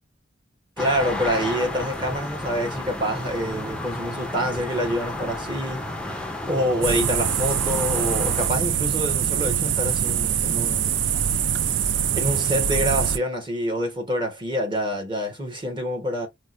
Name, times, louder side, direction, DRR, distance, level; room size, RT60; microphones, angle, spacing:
sound 1, 0.8-8.5, left 1 dB, 5° left, 0.4 m, -32 dB
voice 1, 0.8-5.8 6.1-11.0 12.1-16.3, equal, 25° right, 1.0 m, -26 dB
sound 2, 6.8-13.2, right 8 dB, 70° right, 0.4 m, -23 dB
4.4 x 2.1 x 2.5 m
head